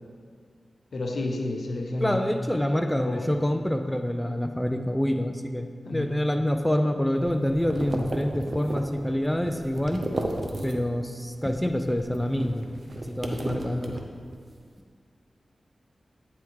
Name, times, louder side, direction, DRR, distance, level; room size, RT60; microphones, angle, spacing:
voice 1, 0.9-2.3 3.0-3.2 5.9-6.1 7.2-7.3 13.4-13.5, left 2 dB, 75° left, 2 dB, 0.8 m, -31 dB
voice 2, 2.0-10.0 10.6-14.0, left 1 dB, 10° left, 6 dB, 0.5 m, -27 dB
sound 1, 7.1-11.1 11.4-14.5, right 1 dB, 60° right, 0.7 m, -34 dB
8.9 x 3.6 x 4.7 m, 2.1 s
cardioid pair, 40°, 0 cm